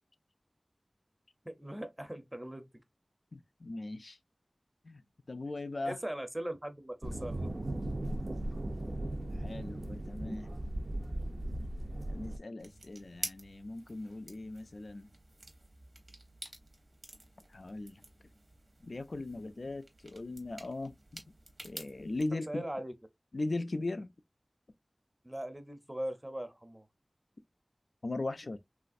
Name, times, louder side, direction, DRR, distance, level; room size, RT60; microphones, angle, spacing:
voice 1, 1.4-2.7 5.8-7.5 22.5-22.9 25.2-26.9, right 1 dB, 15° right, 0.5 m, -40 dB
voice 2, 3.3-4.2 4.8-5.0 5.3-6.0 9.3-10.5 12.1-15.1 17.5-18.0 18.8-21.2 21.6-22.6 23.3-24.1 28.0-28.6, left 2 dB, 80° left, 0.3 m, -39 dB
sound 1, 7.0-12.4, right 1 dB, 65° right, 0.4 m, -37 dB
sound 2, 12.6-22.3, right 2 dB, 90° right, 0.8 m, -49 dB
3.1 x 2.4 x 2.4 m
wide cardioid pair, 60°, 0 cm